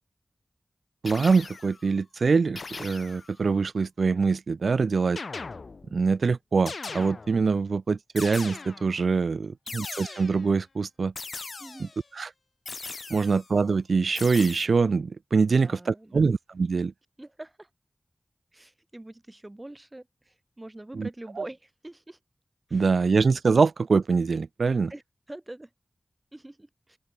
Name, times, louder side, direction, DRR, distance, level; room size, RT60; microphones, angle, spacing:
voice 1, 1.0-5.2 5.9-11.1 11.8-11.9 12.1-12.3 13.1-16.9 20.9-21.1 21.4-21.5 22.7-24.9, right 4 dB, 85° right, 1.8 m, -24 dB
sound 1, 1.1-1.9 2.6-3.4 5.2-6.0 6.7-7.5 8.2-9.0 9.7-10.5 11.2-12.0 12.7-13.5 14.2-14.7, left 4 dB, 65° left, 2.6 m, -39 dB
voice 2, 11.6-11.9 15.6-16.3 17.2-17.7 18.5-22.2 22.7-23.1 24.9-25.0 25.3-25.7 26.3-27.0, right 1 dB, 25° right, 7.8 m, -44 dB
open air
wide cardioid pair, 75°, 0 cm